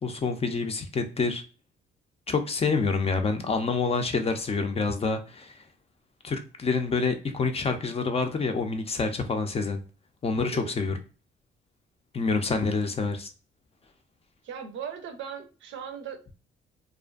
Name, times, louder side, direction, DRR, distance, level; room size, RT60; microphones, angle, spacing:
voice 1, 0.0-1.4 2.3-5.6 6.2-9.8 10.2-11.0 12.1-13.3, left 4 dB, 30° left, 0.5 m, -27 dB
voice 2, 10.3-10.7 14.4-16.4, right 7 dB, 75° right, 0.6 m, -39 dB
2.5 x 2.4 x 2.3 m
cardioid pair, 90°, 20 cm